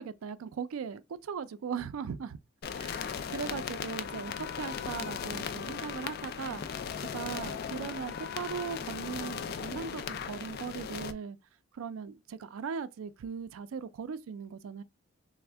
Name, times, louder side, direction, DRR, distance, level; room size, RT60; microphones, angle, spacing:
voice 1, 0.0-2.4 2.8-11.4 11.7-14.8, right 6 dB, 85° right, 0.4 m, -39 dB
sound 1, 2.6-11.1, left 7 dB, 50° left, 0.3 m, -37 dB
3.4 x 2.1 x 3.3 m
head